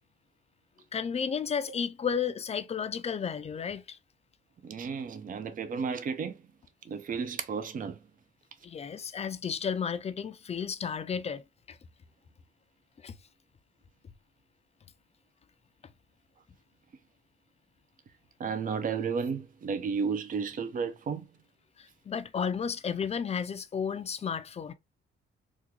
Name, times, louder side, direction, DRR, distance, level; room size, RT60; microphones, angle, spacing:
voice 1, 0.9-4.0 8.6-11.4 11.7-11.8 13.0-13.1 21.8-24.7, left 7 dB, 30° left, 0.4 m, -33 dB
voice 2, 4.6-6.4 6.9-8.0 18.4-21.3, right 6 dB, 45° right, 0.6 m, -33 dB
3.6 x 2.3 x 3.0 m
cardioid pair, 90°, 20 cm